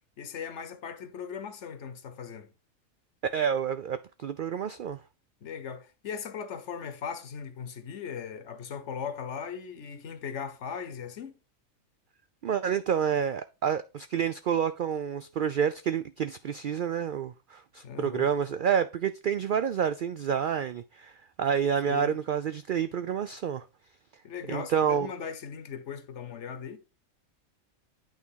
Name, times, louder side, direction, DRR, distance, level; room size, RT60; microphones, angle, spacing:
voice 1, 0.2-2.5 5.4-11.4 17.8-18.3 21.9-22.2 24.2-26.8, left 7 dB, 60° left, 1.2 m, -38 dB
voice 2, 3.3-5.0 12.4-23.7 24.5-25.1, right 8 dB, 80° right, 0.4 m, -29 dB
9.0 x 3.6 x 5.6 m
omnidirectional pair, 1.4 m